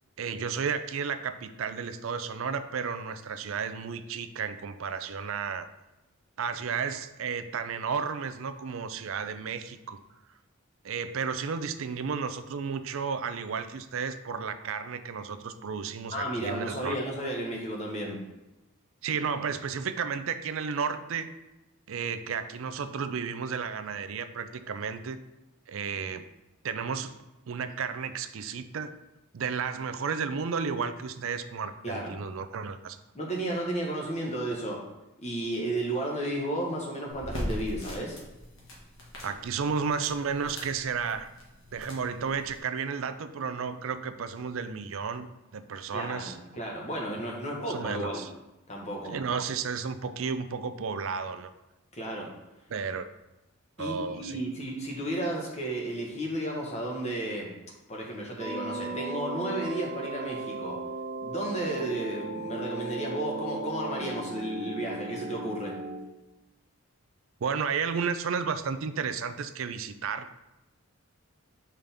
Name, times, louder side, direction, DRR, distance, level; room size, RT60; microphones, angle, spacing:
voice 1, 0.2-5.7 6.4-10.0 10.8-17.0 19.0-21.3 21.9-25.2 25.7-26.3 26.6-29.0 29.3-33.0 39.2-41.3 41.7-45.3 45.5-46.4 47.7-48.3 49.1-51.5 52.7-53.1 53.8-54.4 67.4-70.4, right 6 dB, 65° right, 10 dB, 0.4 m, -33 dB
voice 2, 16.1-18.2 31.8-32.1 33.1-34.9 35.2-38.2 45.9-48.2 48.7-49.2 51.9-52.3 53.8-57.5 57.9-60.8 61.2-65.8, right 1 dB, 30° left, -1 dB, 1.3 m, -33 dB
sound 1, 37.1-42.6, left 1 dB, 65° left, 1.7 m, -40 dB
sound 2, 58.4-66.0, right 3 dB, 25° right, 0.9 m, -36 dB
5.7 x 5.1 x 3.5 m, 0.99 s
head